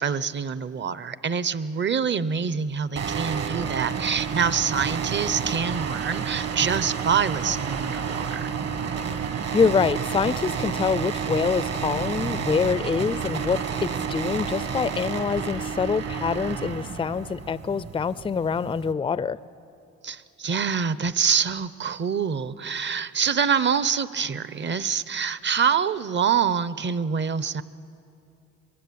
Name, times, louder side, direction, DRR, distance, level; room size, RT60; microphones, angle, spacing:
voice 1, 0.0-8.5 20.0-27.6, right 6 dB, 40° right, 16 dB, 0.8 m, -25 dB
sound 1, 3.0-18.9, right 6 dB, 55° right, 1.8 m, -30 dB
voice 2, 9.5-19.4, left 5 dB, 15° left, 17 dB, 0.5 m, -25 dB
23.5 x 21.0 x 8.6 m, 2.7 s
cardioid pair, 90°, 30 cm